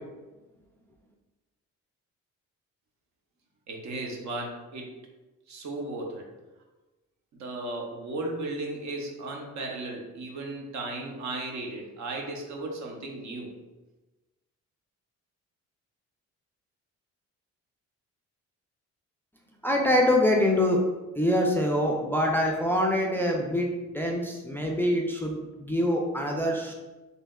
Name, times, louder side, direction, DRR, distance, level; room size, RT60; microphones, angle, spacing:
voice 1, 3.7-5.0 5.5-6.3 7.3-13.5, right 2 dB, 65° right, 1 dB, 0.7 m, -35 dB
voice 2, 19.6-20.8 21.1-23.7 23.9-26.7, left 1 dB, 5° left, 0 dB, 0.3 m, -25 dB
3.2 x 2.7 x 2.3 m, 1.1 s
cardioid pair, 90°, 30 cm